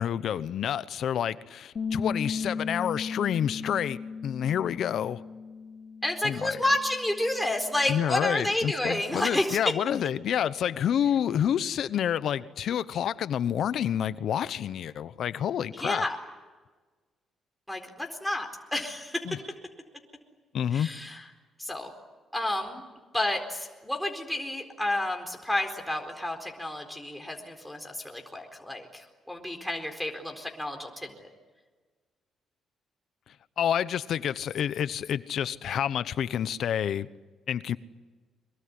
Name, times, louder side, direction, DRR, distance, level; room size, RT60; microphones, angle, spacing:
voice 1, 0.0-5.2 6.2-6.6 7.9-16.0 19.2-19.4 20.5-20.9 33.6-37.1 37.5-37.8, left 9 dB, 70° left, 0.9 m, -28 dB
Bass guitar, 1.8-8.0, left 5 dB, 45° left, 3.1 m, -36 dB
voice 2, 6.0-9.6 15.7-16.2 17.7-19.2 20.7-21.2 21.6-21.9 22.3-22.8 23.1-31.3, left 1 dB, 5° left, 4.2 m, -30 dB
24.0 x 22.5 x 9.7 m
cardioid pair, 90°, 0 cm